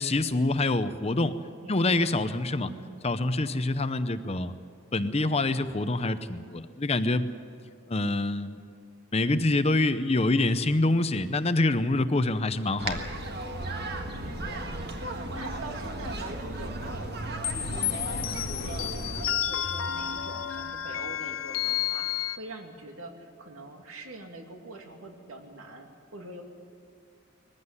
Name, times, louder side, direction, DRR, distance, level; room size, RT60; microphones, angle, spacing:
voice 1, 0.0-1.4 1.7-2.7 3.0-4.5 4.9-7.3 7.9-8.6 9.1-13.1, left 2 dB, 30° left, 11 dB, 0.7 m, -26 dB
voice 2, 1.6-2.2 2.6-3.0 14.2-26.4, right 1 dB, 80° right, 3 dB, 2.6 m, -44 dB
sound 1, 12.8-19.3, right 2 dB, 50° right, 1.7 m, -35 dB
sound 2, 17.4-22.4, left 10 dB, 80° left, 0.7 m, -31 dB
20.5 x 15.5 x 9.7 m, 2.2 s
head